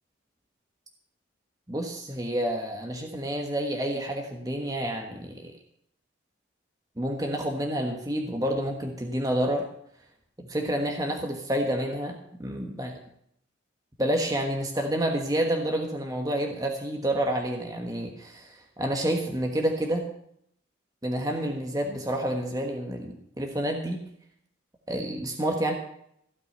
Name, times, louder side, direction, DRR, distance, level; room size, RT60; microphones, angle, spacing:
voice 1, 1.7-5.5 7.0-9.6 10.4-13.0 14.0-20.1 21.0-24.0 24.9-25.7, right 1 dB, 20° right, 2 dB, 1.3 m, -29 dB
16.0 x 5.9 x 9.0 m, 0.71 s
head